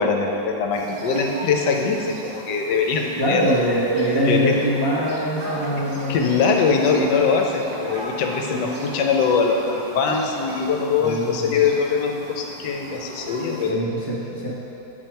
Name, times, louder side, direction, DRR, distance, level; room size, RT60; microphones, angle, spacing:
voice 1, 0.0-3.8 4.2-4.5 6.1-13.9, left 5 dB, 75° left, 2 dB, 1.2 m, -22 dB
sound 1, 0.7-13.7, right 1 dB, 70° right, 1.4 m, -37 dB
voice 2, 3.2-6.5 8.5-8.7 11.0-11.6 13.7-14.5, equal, 25° right, -8 dB, 0.5 m, -23 dB
8.0 x 4.2 x 4.5 m, 2.9 s
omnidirectional pair, 1.9 m